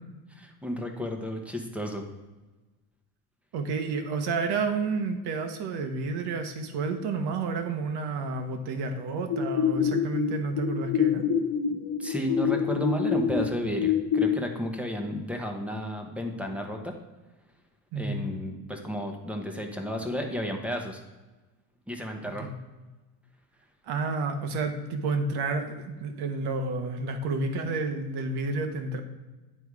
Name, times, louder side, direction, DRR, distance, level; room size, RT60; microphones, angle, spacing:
voice 1, 0.3-2.0 11.7-16.9 17.9-21.0 21.9-22.5, equal, 5° right, 3 dB, 0.9 m, -32 dB
voice 2, 3.5-11.2 17.9-18.3 22.4-22.6 23.9-29.0, right 3 dB, 60° right, 6 dB, 1.2 m, -30 dB
sound 1, 9.3-14.3, left 7 dB, 40° left, 1.3 m, -26 dB
9.7 x 3.5 x 4.7 m, 1.2 s
supercardioid pair, 115°, 45 cm